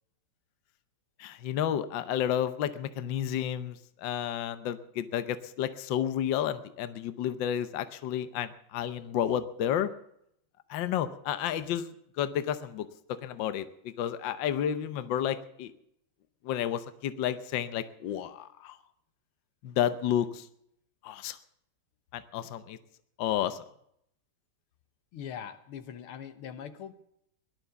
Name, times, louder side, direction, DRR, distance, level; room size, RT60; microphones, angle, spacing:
voice 1, 1.2-9.9 10.7-11.9 12.2-12.9 13.2-15.7 16.4-18.7 19.6-20.4 21.0-21.4 22.1-22.8 23.2-23.6, left 10 dB, 65° left, 12 dB, 1.4 m, -31 dB
voice 2, 25.1-26.9, left 8 dB, 85° left, 10 dB, 2.0 m, -41 dB
17.5 x 12.0 x 6.9 m, 0.74 s
omnidirectional pair, 2.4 m